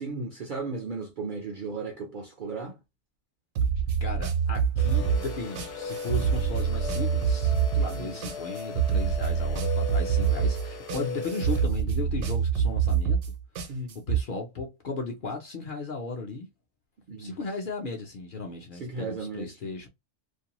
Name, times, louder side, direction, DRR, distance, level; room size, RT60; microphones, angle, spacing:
voice 1, 0.0-2.8 7.9-8.2 10.9-11.2 13.7-14.0 17.1-17.4 18.8-19.6, right 3 dB, 55° right, 0.6 m, -35 dB
sound 1, 3.6-14.2, right 7 dB, 75° right, 1.0 m, -26 dB
voice 2, 4.0-13.2 13.9-16.5 17.2-19.9, left 3 dB, 50° left, 0.7 m, -36 dB
sound 2, 4.8-11.6, left 5 dB, 70° left, 1.0 m, -38 dB
2.5 x 2.2 x 2.9 m
omnidirectional pair, 1.3 m